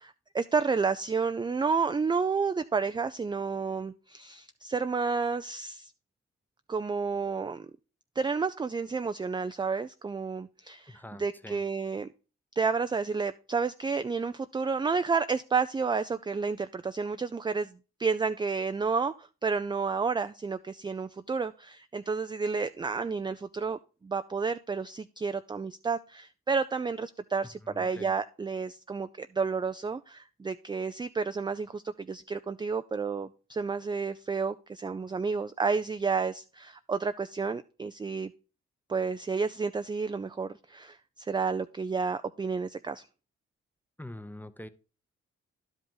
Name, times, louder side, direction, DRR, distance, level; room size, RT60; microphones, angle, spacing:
voice 1, 0.0-5.9 6.7-7.7 8.2-12.1 12.6-38.3 38.9-43.1, right 5 dB, 15° right, 11 dB, 0.4 m, -31 dB
voice 2, 10.9-11.6 27.6-28.1 44.0-44.7, left 1 dB, 5° left, 13 dB, 0.7 m, -44 dB
11.0 x 5.1 x 3.8 m, 0.35 s
supercardioid pair, 45°, 30 cm